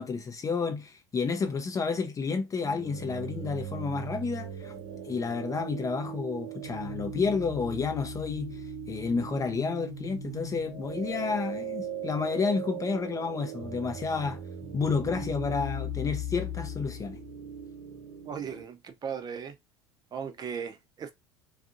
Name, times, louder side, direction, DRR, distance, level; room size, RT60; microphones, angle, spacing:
voice 1, 0.0-4.7 5.0-8.6 8.9-14.4 14.7-17.2, left 5 dB, 25° left, 0.6 m, -30 dB
sound 1, 2.6-18.6, right 2 dB, 65° right, 1.1 m, -38 dB
voice 2, 18.3-19.5 20.1-21.1, right 7 dB, 30° right, 0.7 m, -37 dB
3.4 x 2.5 x 2.5 m
figure-of-eight pair, 70°, 14 cm